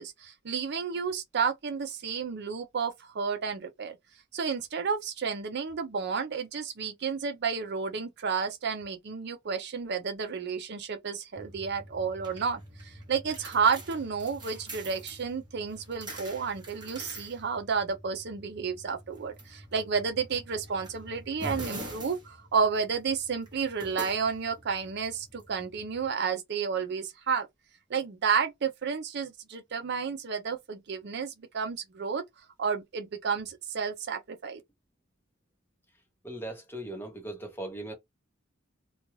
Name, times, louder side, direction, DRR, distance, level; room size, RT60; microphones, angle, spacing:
voice 1, 0.0-4.0 4.3-27.5 27.9-32.2 32.6-34.6, right 5 dB, 55° right, 0.5 m, -31 dB
sound 1, 11.4-26.1, right 1 dB, 20° right, 0.9 m, -45 dB
voice 2, 36.2-37.9, right 1 dB, 10° left, 0.9 m, -38 dB
2.5 x 2.2 x 3.0 m
head